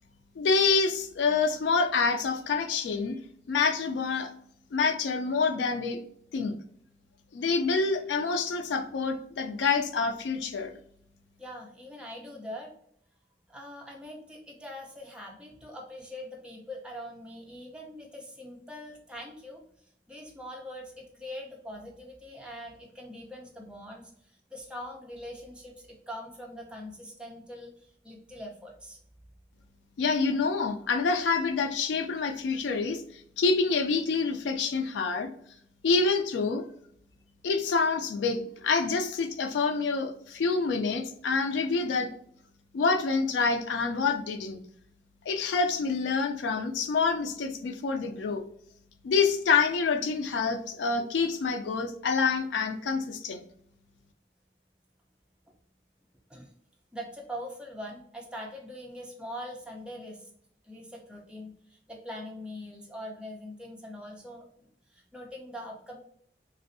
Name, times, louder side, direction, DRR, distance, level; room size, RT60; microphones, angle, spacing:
voice 1, 0.4-3.2 3.5-4.3 4.7-6.0 6.3-6.6 7.3-10.8 30.0-33.0 33.4-35.3 35.8-36.6 37.4-42.1 42.7-44.6 45.3-48.4 49.0-53.4, left 4 dB, 90° left, 6 dB, 0.3 m, -27 dB
voice 2, 11.4-12.7 13.5-19.6 20.1-29.0 56.3-56.5 56.9-60.3 60.6-66.0, equal, 5° right, -1 dB, 0.5 m, -43 dB
3.2 x 2.6 x 2.5 m, 0.66 s
head